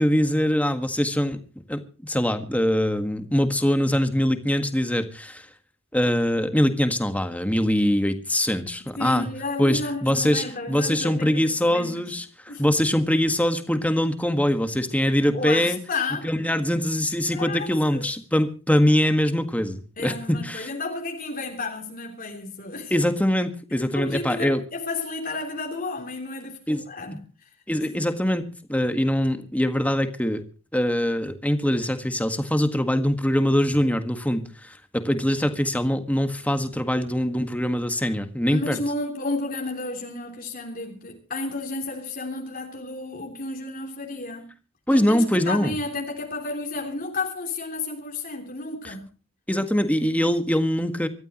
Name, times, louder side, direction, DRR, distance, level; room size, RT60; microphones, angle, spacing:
voice 1, 0.0-1.4 1.7-5.5 5.9-9.3 9.6-15.8 16.2-20.7 22.9-24.6 26.7-26.8 27.7-28.4 28.7-30.4 30.7-38.8 44.9-45.7 48.8-48.9 49.5-51.1, equal, 5° left, 1.7 m, -23 dB
voice 2, 9.0-12.1 12.5-12.7 15.3-16.3 17.3-18.0 20.0-22.9 23.9-27.5 27.8-28.1 38.5-44.5 44.9-49.1, left 3 dB, 40° left, 3.2 m, -32 dB
25.0 x 14.0 x 3.0 m
head